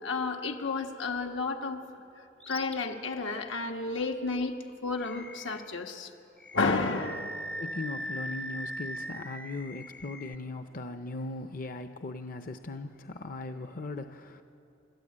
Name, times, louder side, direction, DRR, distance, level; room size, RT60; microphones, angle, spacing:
voice 1, 0.0-1.8 2.5-4.6 4.8-6.1 6.5-7.4, left 3 dB, 90° left, 3 dB, 1.6 m, -31 dB
Animal, 2.4-2.8 3.2-3.4 5.0-5.7 6.4-10.4, equal, 5° left, 0.5 m, -40 dB
voice 2, 7.6-14.4, left 2 dB, 45° left, 8 dB, 0.7 m, -39 dB
29.5 x 13.0 x 8.7 m, 2.8 s
head